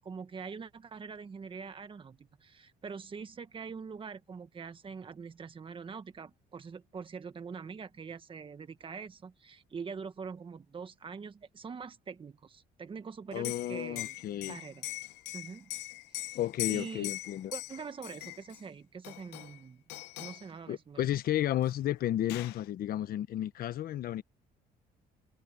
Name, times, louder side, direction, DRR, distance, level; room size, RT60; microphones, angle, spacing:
voice 1, 0.0-14.2 14.5-14.9 15.3-15.7 16.2-16.4 16.7-17.1 17.5-19.8 20.2-21.0, right 5 dB, 30° right, 1.6 m, -44 dB
Liquid, 13.3-18.6 19.0-19.6 19.9-20.5 21.6-21.7 22.0-22.6, left 18 dB, 90° left, 0.8 m, -41 dB
voice 2, 13.3-14.6 16.3-17.5 20.7-24.2, left 12 dB, 60° left, 1.2 m, -32 dB
cardioid pair, 110°, 17 cm